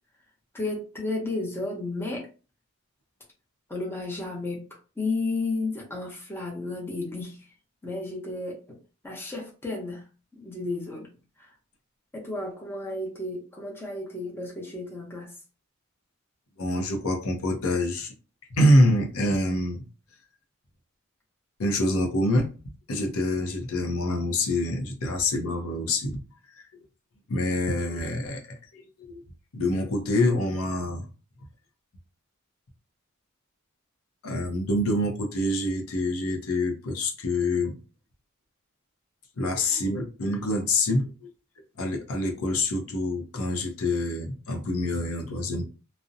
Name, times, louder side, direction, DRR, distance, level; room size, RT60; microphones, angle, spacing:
voice 1, 0.5-2.3 3.7-4.6 5.0-7.4 7.8-8.8 9.0-10.0 10.3-11.1 11.4-11.5 12.1-15.3, left 2 dB, 10° left, 0.6 m, -32 dB
voice 2, 16.6-18.1 18.5-19.8 21.6-22.5 22.9-26.2 26.5-26.8 27.3-29.2 29.5-31.1 34.2-37.8 39.4-41.1 41.8-45.6, left 1 dB, 75° left, 0.6 m, -26 dB
2.5 x 2.0 x 2.5 m
head